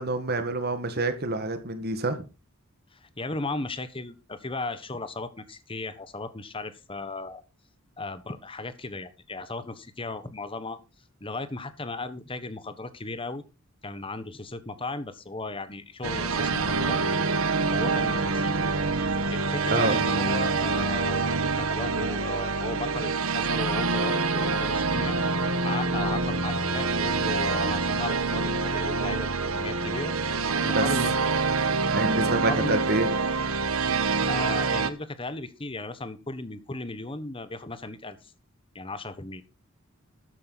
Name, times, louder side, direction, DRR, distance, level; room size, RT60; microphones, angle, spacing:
voice 1, 0.0-2.2 19.7-20.0 30.7-30.8 31.8-33.1, right 2 dB, 50° right, 1.9 m, -27 dB
voice 2, 2.9-7.4 8.0-10.8 11.2-13.4 13.8-17.0 17.7-18.5 19.3-25.2 25.6-30.1 30.6-31.2 32.2-33.0 34.3-38.3 38.7-39.4, left 2 dB, 25° left, 1.2 m, -36 dB
sound 1, 16.0-34.9, right 4 dB, 80° right, 1.2 m, -26 dB
13.0 x 9.7 x 4.1 m
head